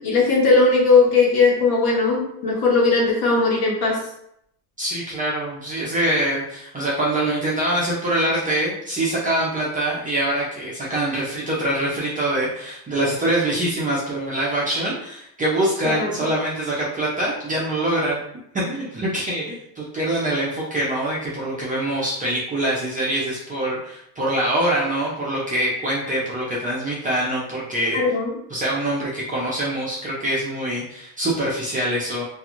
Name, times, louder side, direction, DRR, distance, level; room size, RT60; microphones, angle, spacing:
voice 1, 0.0-4.0 15.8-16.1 27.9-28.3, left 3 dB, 50° left, -2 dB, 0.9 m, -18 dB
voice 2, 4.8-18.2 18.5-28.0 28.5-32.2, right 1 dB, 20° right, -6 dB, 0.4 m, -24 dB
2.4 x 2.3 x 2.9 m, 0.75 s
cardioid pair, 135°, 46 cm